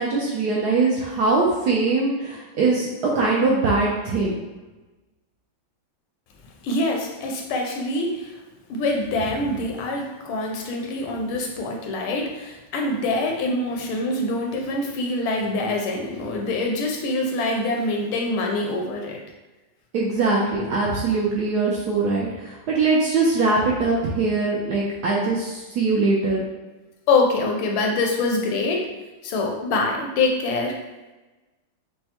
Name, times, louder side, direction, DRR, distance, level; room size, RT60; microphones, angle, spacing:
voice 1, 0.0-2.9 3.1-4.4 19.9-26.4, right 3 dB, 70° right, -4 dB, 1.0 m, -22 dB
voice 2, 6.6-8.4 8.7-19.2 27.1-28.9 29.2-30.8, left 2 dB, 90° left, 1 dB, 1.5 m, -25 dB
5.4 x 2.1 x 2.8 m, 1.2 s
omnidirectional pair, 2.2 m